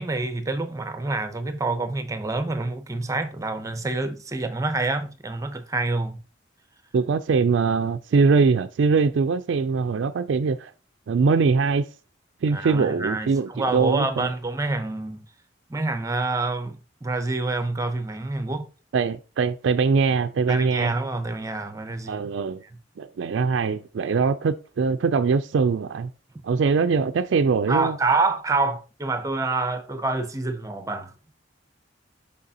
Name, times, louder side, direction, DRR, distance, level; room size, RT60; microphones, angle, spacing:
voice 1, 0.0-6.2 12.5-15.3 15.7-18.7 20.5-22.3 27.7-31.1, right 3 dB, 15° right, 0.7 m, -27 dB
voice 2, 6.9-10.7 11.1-11.9 12.4-14.3 18.9-20.9 22.1-22.6 23.0-26.1 26.4-28.0, right 5 dB, 75° right, 0.4 m, -22 dB
6.5 x 5.5 x 2.8 m
head